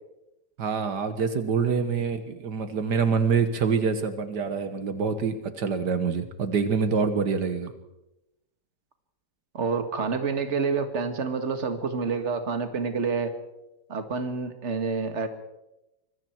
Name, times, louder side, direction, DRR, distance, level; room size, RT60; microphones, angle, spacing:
voice 1, 0.6-7.7, right 5 dB, 75° right, 9 dB, 2.0 m, -26 dB
voice 2, 9.5-13.3 13.9-15.3, right 5 dB, 45° right, 8 dB, 2.1 m, -28 dB
25.5 x 22.5 x 4.6 m, 0.93 s
omnidirectional pair, 1.8 m